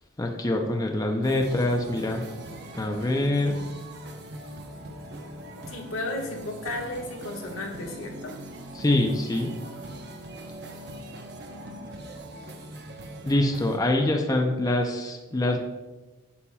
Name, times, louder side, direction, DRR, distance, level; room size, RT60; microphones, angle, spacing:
voice 1, 0.2-2.2 2.8-3.6 8.7-9.5 13.2-15.6, left 1 dB, 15° left, 2 dB, 0.5 m, -25 dB
sound 1, 1.2-13.8, right 1 dB, 55° right, 0.8 m, -41 dB
voice 2, 5.7-8.3, left 2 dB, 80° left, 0 dB, 1.4 m, -34 dB
8.3 x 7.1 x 2.3 m, 1.1 s
head